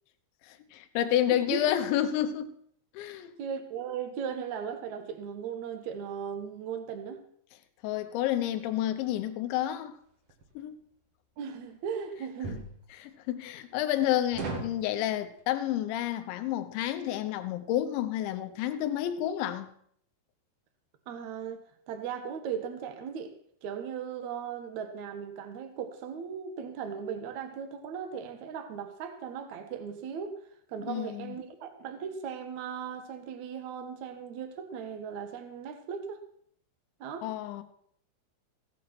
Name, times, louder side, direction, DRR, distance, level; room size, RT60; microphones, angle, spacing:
voice 1, 0.5-2.6 2.9-3.3 7.8-10.0 10.6-10.8 12.9-19.7 30.9-31.4 37.2-37.6, left 12 dB, 80° left, 3.2 m, -30 dB
voice 2, 1.3-1.6 3.4-7.2 11.4-12.7 21.1-23.3 23.6-30.4 30.7-36.2 37.0-37.3, right 7 dB, 70° right, 1.8 m, -37 dB
sound 1, 10.3-10.5 12.4-12.7 14.3-14.8, right 3 dB, 50° right, 1.9 m, -35 dB
16.0 x 9.3 x 5.9 m
omnidirectional pair, 5.4 m